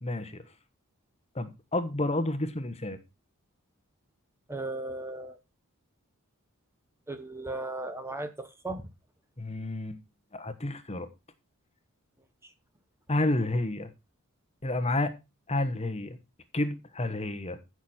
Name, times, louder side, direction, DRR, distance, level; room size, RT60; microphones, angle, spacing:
voice 1, 0.0-0.4 1.3-3.0 9.4-10.0 10.3-11.1 13.1-13.9 14.6-15.1 15.5-16.2 16.5-17.6, left 2 dB, 30° left, 1.2 m, -30 dB
voice 2, 4.5-5.4 7.1-8.8, right 2 dB, 10° right, 1.0 m, -36 dB
15.5 x 6.3 x 4.3 m
head